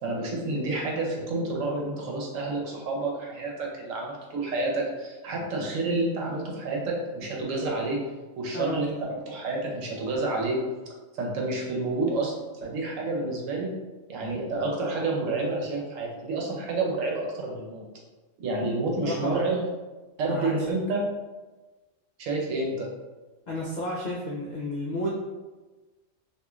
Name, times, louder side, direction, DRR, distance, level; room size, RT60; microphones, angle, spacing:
voice 1, 0.0-8.0 8.4-8.9 9.3-10.6 11.1-12.3 12.6-13.7 14.1-17.9 18.4-19.6 20.2-21.1 22.2-22.9, right 2 dB, 90° right, -1 dB, 1.1 m, -29 dB
voice 2, 8.5-8.9 19.0-19.4 20.3-20.5 23.5-25.1, left 1 dB, 80° left, -4 dB, 0.4 m, -31 dB
3.0 x 2.5 x 2.3 m, 1.2 s
omnidirectional pair, 1.3 m